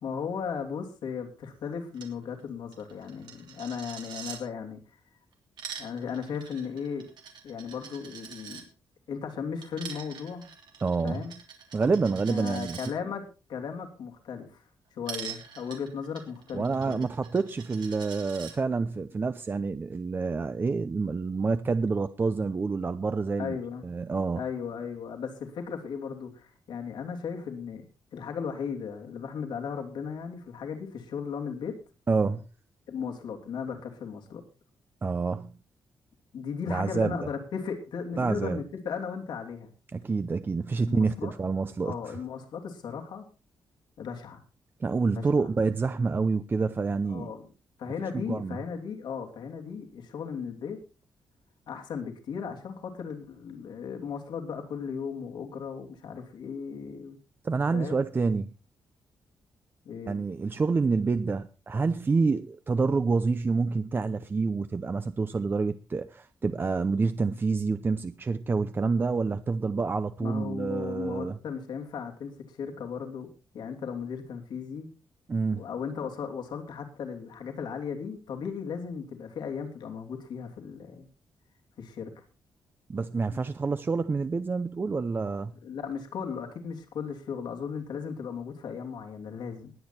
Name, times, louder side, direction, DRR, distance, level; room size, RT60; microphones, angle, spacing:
voice 1, 0.0-5.0 5.8-7.1 7.4-8.6 9.1-10.5 11.0-11.3 12.3-13.2 13.5-14.6 14.9-17.1 23.4-23.8 24.4-27.9 28.1-31.7 32.9-34.4 36.3-39.7 40.8-41.3 41.8-43.3 44.0-44.4 45.1-45.5 47.1-47.5 47.8-50.8 51.7-57.2 57.7-58.0 59.8-60.2 70.2-73.3 73.5-74.9 75.5-81.1 81.8-82.1 85.6-89.7, left 6 dB, 80° left, 2.9 m, -36 dB
Coin (dropping), 1.9-2.1 2.4-2.5 2.7-4.4 5.3-8.6 9.6-12.9 15.0-18.5, right 7 dB, 80° right, 3.2 m, -44 dB
voice 2, 10.8-11.2 11.7-12.8 16.5-23.5 23.8-24.4 32.1-32.4 35.0-35.5 36.7-37.2 38.2-38.6 39.9-42.1 44.8-47.3 48.3-48.6 57.4-58.5 60.1-71.4 75.3-75.6 82.9-85.5, right 4 dB, 30° right, 0.6 m, -28 dB
20.5 x 8.7 x 4.3 m
cardioid pair, 130°, 8 cm